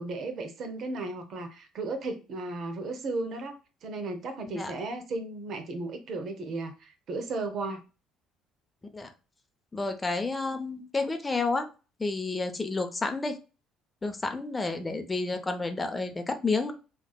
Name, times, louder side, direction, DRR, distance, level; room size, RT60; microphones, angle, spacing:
voice 1, 0.0-7.8, right 3 dB, 55° right, 0.6 m, -35 dB
voice 2, 9.7-11.7 12.0-13.4 14.0-16.7, left 3 dB, 25° left, 0.6 m, -30 dB
3.4 x 2.4 x 2.3 m
hypercardioid pair, 55°, 0 cm